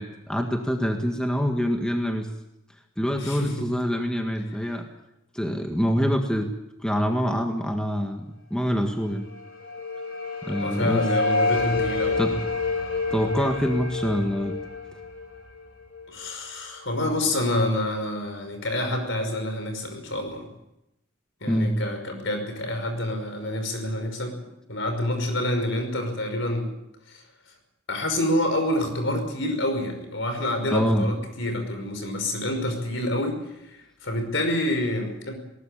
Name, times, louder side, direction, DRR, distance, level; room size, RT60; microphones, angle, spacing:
voice 1, 0.0-2.3 3.0-4.9 5.3-6.5 6.8-9.3 10.4-11.1 12.2-12.4 13.1-14.6 21.5-21.8 30.7-31.1, equal, 5° left, 3 dB, 1.7 m, -25 dB
voice 2, 3.2-3.7 10.6-12.2 16.1-20.5 21.4-24.4 24.7-26.7 27.1-27.2 27.9-33.4 34.0-35.4, left 1 dB, 60° left, 6 dB, 5.6 m, -27 dB
sound 1, 9.3-16.3, left 3 dB, 75° left, 4.4 m, -29 dB
20.0 x 19.0 x 8.8 m, 0.87 s
head